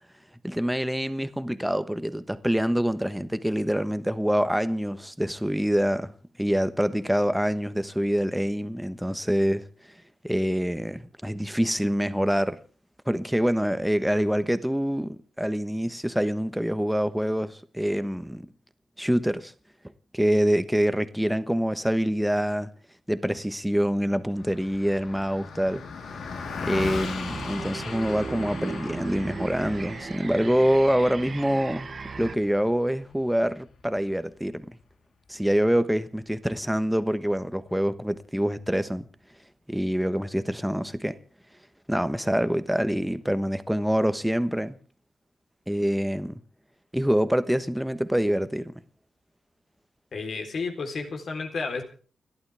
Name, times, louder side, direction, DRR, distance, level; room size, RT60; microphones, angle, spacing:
voice 1, 0.4-6.1 6.4-9.6 10.2-12.6 13.1-18.5 19.0-19.5 20.1-22.7 23.1-25.8 26.6-31.9 32.2-34.6 35.3-39.1 39.7-41.2 41.9-44.8 45.7-46.4 46.9-48.7, equal, 5° right, 1.2 m, -25 dB
Car passing by, 24.4-34.0, left 4 dB, 85° left, 3.6 m, -38 dB
sound 1, 27.2-32.3, right 4 dB, 40° right, 1.1 m, -37 dB
voice 2, 50.1-51.8, left 4 dB, 60° left, 3.8 m, -31 dB
29.5 x 12.0 x 3.5 m
wide cardioid pair, 140°, 0 cm